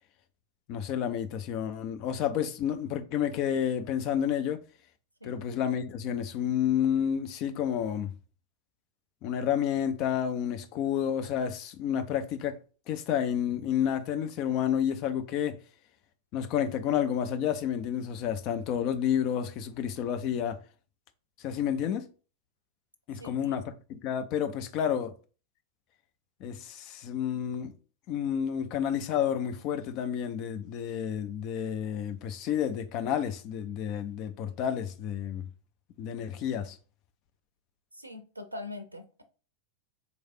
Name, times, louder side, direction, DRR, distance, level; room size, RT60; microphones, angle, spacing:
voice 1, 0.7-4.6 5.2-8.1 9.2-12.6 12.9-15.6 16.3-20.6 21.4-22.0 23.1-25.1 26.4-27.7 28.1-35.5 36.0-36.8, left 9 dB, 40° left, 0.5 m, -30 dB
voice 2, 23.2-23.6 37.9-39.2, left 2 dB, 85° right, 0.5 m, -42 dB
4.1 x 3.2 x 2.6 m
figure-of-eight pair, 90°, 0 cm